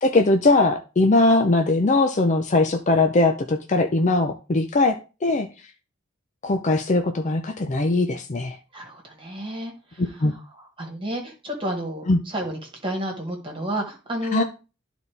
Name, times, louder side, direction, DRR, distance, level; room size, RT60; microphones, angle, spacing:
voice 1, 0.0-5.0 5.2-5.5 6.4-8.6 10.0-10.3 12.1-12.2 14.3-14.4, left 2 dB, 35° left, 6 dB, 0.6 m, -20 dB
voice 2, 8.7-14.4, right 1 dB, 25° right, 1 dB, 1.7 m, -31 dB
12.0 x 4.1 x 3.4 m, 0.31 s
head